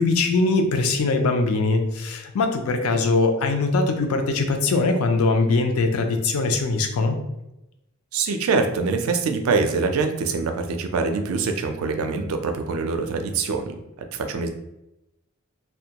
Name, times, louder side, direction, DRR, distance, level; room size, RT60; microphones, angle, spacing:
voice 1, 0.0-7.2, left 3 dB, 85° left, 5 dB, 0.4 m, -21 dB
voice 2, 8.1-13.8 14.1-14.5, right 4 dB, 75° right, 6 dB, 0.4 m, -24 dB
2.2 x 2.2 x 2.8 m, 0.90 s
head